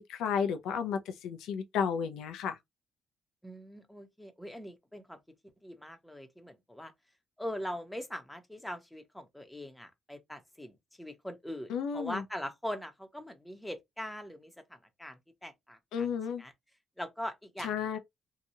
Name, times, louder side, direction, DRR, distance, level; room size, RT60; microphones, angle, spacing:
voice 1, 0.0-2.6 11.7-12.2 15.9-16.4 17.6-18.0, left 7 dB, 90° left, 0.5 m, -32 dB
voice 2, 3.4-5.2 5.6-6.9 7.4-16.1 16.4-16.5 17.0-17.7, equal, 5° left, 0.8 m, -42 dB
2.8 x 2.3 x 2.7 m
cardioid pair, 90°, 0 cm